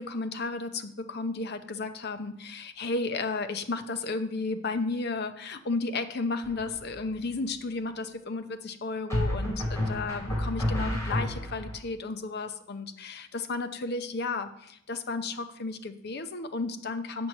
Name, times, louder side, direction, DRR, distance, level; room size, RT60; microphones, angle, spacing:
voice 1, 0.0-17.3, left 3 dB, 55° left, 9 dB, 0.7 m, -33 dB
sound 1, 6.4-6.9 9.1-11.8, left 1 dB, 15° left, 3.2 m, -30 dB
7.7 x 4.5 x 6.5 m, 0.74 s
head